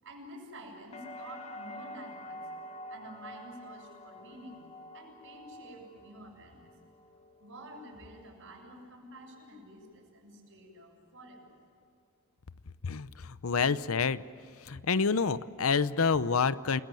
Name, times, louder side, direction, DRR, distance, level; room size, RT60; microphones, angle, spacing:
voice 1, 0.0-4.6 4.9-6.7 7.4-11.6, right 1 dB, 60° right, 0 dB, 7.3 m, -49 dB
sound 1, 0.9-8.8 9.2-9.9, left 1 dB, 30° left, 1.8 m, -48 dB
voice 2, 12.8-14.2 14.6-16.8, left 5 dB, 70° left, 15 dB, 0.7 m, -28 dB
29.5 x 21.0 x 7.7 m, 2.5 s
head